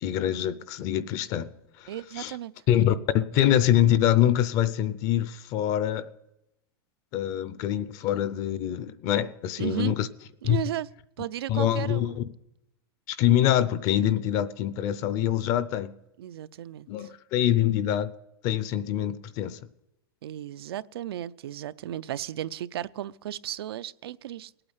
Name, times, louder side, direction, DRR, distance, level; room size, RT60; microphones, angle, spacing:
voice 1, 0.0-2.4 2.7-6.1 7.1-10.1 10.4-10.6 11.5-12.2 13.1-15.9 16.9-18.1 18.4-19.6, left 11 dB, 25° left, 0.5 m, -25 dB
voice 2, 1.9-2.5 9.6-10.0 10.4-10.9 11.2-12.1 16.2-17.1 20.2-24.5, right 12 dB, 85° right, 0.5 m, -34 dB
19.0 x 8.8 x 8.1 m
supercardioid pair, 175°, 13 cm